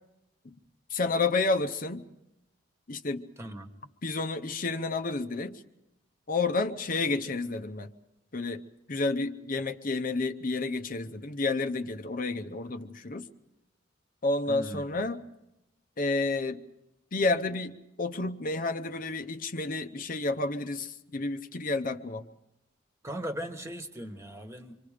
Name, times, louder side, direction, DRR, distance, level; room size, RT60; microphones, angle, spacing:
voice 1, 0.9-2.1 2.9-3.2 4.0-5.6 6.3-7.9 8.3-13.3 14.2-15.2 16.0-16.6 17.1-22.3, left 3 dB, 50° left, 8 dB, 0.8 m, -30 dB
voice 2, 3.4-3.7 14.5-14.9 23.0-24.8, equal, 15° right, 6 dB, 1.4 m, -38 dB
26.5 x 24.5 x 5.1 m, 0.88 s
head